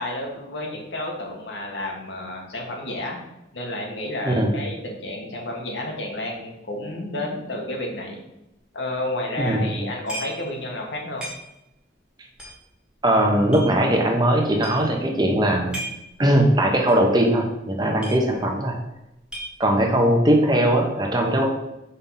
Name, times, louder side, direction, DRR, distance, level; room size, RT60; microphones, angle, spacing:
voice 1, 0.0-3.2 3.5-8.3 8.7-11.2, left 1 dB, 75° left, 0 dB, 1.4 m, -31 dB
voice 2, 9.4-9.9 13.0-15.8 16.2-18.7 19.6-21.5, right 1 dB, 20° right, 1 dB, 0.8 m, -20 dB
sound 1, 10.1-10.5 10.8-10.9 11.2-11.7 12.3-13.7 14.2-14.3 14.5-15.0 15.5-16.1 16.4-16.5 16.9-17.1 17.4-17.5 17.7-18.6 18.9-19.9, right 1 dB, 5° right, 1.2 m, -35 dB
5.4 x 3.5 x 5.5 m, 0.89 s
head